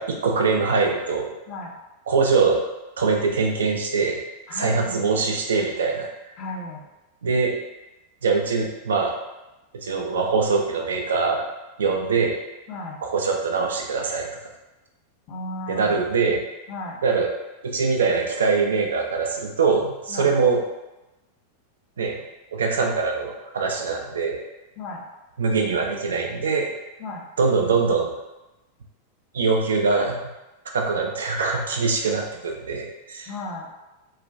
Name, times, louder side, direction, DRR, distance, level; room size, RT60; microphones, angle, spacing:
voice 1, 0.0-1.4 2.1-2.6 3.0-4.2 4.5-6.1 7.2-7.5 8.2-9.1 9.8-11.4 11.8-12.4 13.1-14.3 15.7-16.4 17.0-17.3 17.6-20.6 22.0-22.2 22.5-24.4 25.4-26.7 27.4-28.2 29.3-30.2 30.7-33.3, right 4 dB, 65° right, 1 dB, 0.4 m, -23 dB
voice 2, 1.5-1.8 4.5-5.3 6.4-6.9 12.7-13.0 15.3-16.0 16.7-17.0 20.1-20.3 24.8-25.1 27.0-27.3 33.3-33.7, left 2 dB, 40° left, 0 dB, 0.4 m, -35 dB
2.3 x 2.1 x 2.5 m, 1.0 s
figure-of-eight pair, 90°, 0 cm